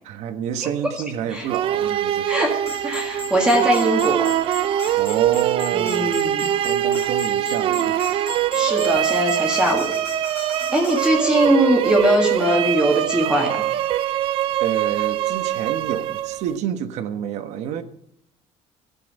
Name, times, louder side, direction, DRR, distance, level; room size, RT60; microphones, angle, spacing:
voice 1, 0.1-2.3 5.0-6.2 6.6-8.0 14.6-17.8, right 9 dB, 70° right, 1.2 m, -28 dB
sound 1, 1.5-16.6, right 12 dB, 45° right, 0.6 m, -23 dB
voice 2, 2.3-4.3 5.7-6.5 8.5-9.9 10.7-13.7, right 1 dB, 5° right, 1.8 m, -21 dB
sound 2, 2.6-11.1, left 4 dB, 20° left, 2.8 m, -37 dB
13.5 x 7.7 x 7.6 m
cardioid pair, 175°, 12 cm